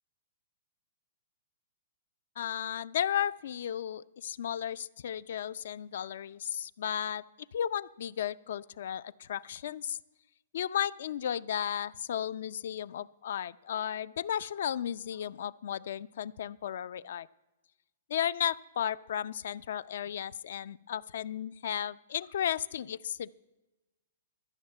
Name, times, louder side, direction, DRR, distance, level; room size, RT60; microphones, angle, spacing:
voice 1, 2.4-7.2 7.5-10.0 10.5-17.3 18.1-23.3, left 9 dB, 65° left, 17 dB, 0.4 m, -34 dB
12.5 x 6.4 x 8.8 m, 1.1 s
hypercardioid pair, 150°, 0 cm